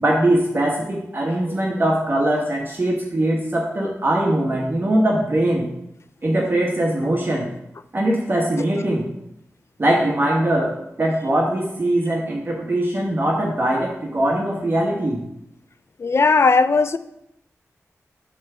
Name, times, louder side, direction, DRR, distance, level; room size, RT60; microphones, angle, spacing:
voice 1, 0.0-5.7 6.2-7.5 7.9-9.1 9.8-15.2, right 1 dB, 40° right, -2 dB, 1.2 m, -21 dB
voice 2, 16.0-17.0, left 4 dB, 55° left, 13 dB, 0.4 m, -17 dB
7.3 x 3.3 x 6.1 m, 0.82 s
wide cardioid pair, 65°, 6 cm